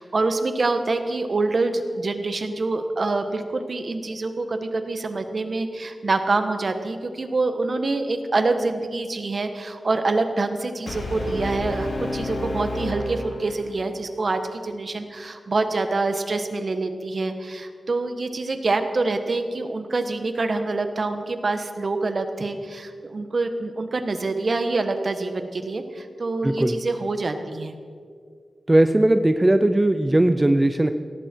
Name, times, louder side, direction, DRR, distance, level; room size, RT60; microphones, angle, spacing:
voice 1, 0.0-27.7, right 3 dB, 60° right, 7 dB, 1.5 m, -26 dB
Brass instrument, 10.9-13.9, left 1 dB, 75° left, 3.1 m, -30 dB
voice 2, 26.4-26.8 28.7-30.9, right 1 dB, 20° right, 9 dB, 0.7 m, -18 dB
18.0 x 16.0 x 4.6 m, 2.1 s
cardioid pair, 60°, 0 cm